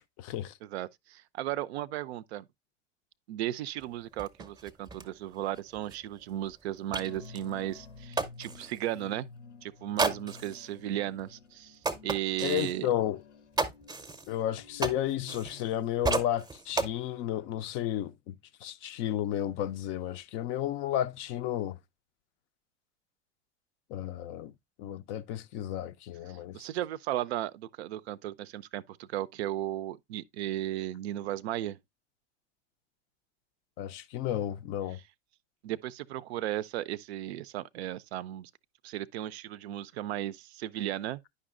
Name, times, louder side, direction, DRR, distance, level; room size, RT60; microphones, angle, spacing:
voice 1, 0.0-0.5 12.4-13.2 14.3-18.4 18.6-21.8 23.9-24.5 24.8-26.7 33.8-35.0, left 12 dB, 40° left, 0.4 m, -32 dB
voice 2, 0.6-2.4 3.3-9.3 9.6-12.9 26.5-31.8 35.6-38.5 38.8-41.2, right 13 dB, 65° right, 0.5 m, -35 dB
sound 1, 3.8-3.9 4.2-8.9 10.0-10.6 11.2-11.3 11.8-12.8 13.5-15.8 16.0-16.9, right 3 dB, 10° right, 0.6 m, -34 dB
sound 2, 6.9-15.7, left 4 dB, 80° left, 0.8 m, -51 dB
9.7 x 5.3 x 2.4 m
hypercardioid pair, 85°, 34 cm